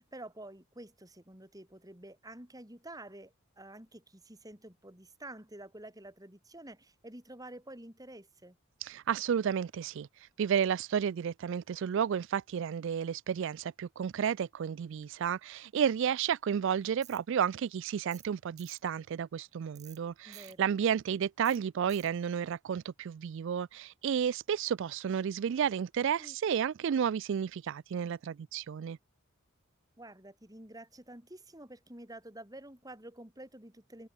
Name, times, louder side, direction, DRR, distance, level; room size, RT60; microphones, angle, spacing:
voice 1, 0.0-8.6 20.2-20.7 26.2-26.4 30.0-34.1, right 1 dB, 15° right, 3.8 m, -49 dB
voice 2, 8.8-10.1 10.4-29.0, right 8 dB, 60° right, 0.3 m, -32 dB
Tools, 17.0-17.2 18.1-18.3 18.6-18.8 19.7-20.0 20.3-20.5 21.4-21.6 21.9-22.1, right 12 dB, 30° right, 3.8 m, -53 dB
open air
head